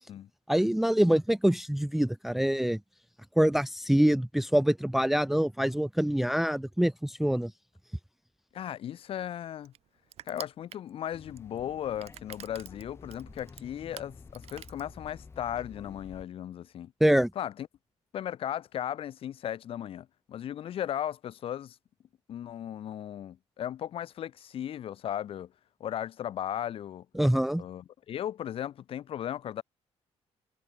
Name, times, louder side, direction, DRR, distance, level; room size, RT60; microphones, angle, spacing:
voice 1, 0.5-2.8 3.4-7.5 17.0-17.3 27.2-27.6, equal, ahead, 0.6 m, -25 dB
voice 2, 8.5-9.7 10.3-16.9 17.3-17.7 18.1-21.8 22.3-25.5 25.8-27.0 27.6-29.6, left 10 dB, 50° left, 3.4 m, -36 dB
Crushing, 8.6-15.4, right 12 dB, 60° right, 2.2 m, -49 dB
sound 1, 11.1-16.2, left 4 dB, 20° left, 5.7 m, -50 dB
cardioid pair, 175°, 12 cm